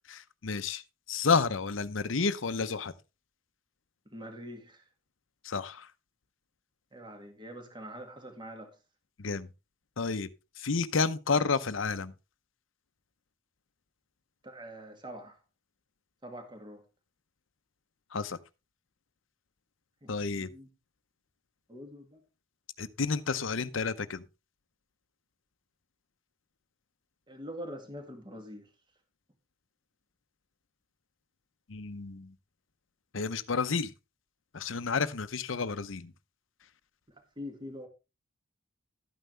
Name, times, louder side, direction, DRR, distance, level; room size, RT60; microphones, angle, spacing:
voice 1, 0.4-0.8 1.1-2.9 5.4-5.9 9.2-9.5 10.0-10.3 10.6-12.1 18.1-18.4 20.1-20.5 22.8-24.2 31.7-32.3 33.1-33.9 34.5-36.1, left 4 dB, 75° left, 0.8 m, -30 dB
voice 2, 4.1-4.8 6.9-8.8 14.4-15.4 16.2-16.8 20.0-20.7 21.7-22.2 27.3-28.7 37.1-37.9, equal, 25° right, 2.0 m, -44 dB
12.5 x 9.2 x 3.3 m
head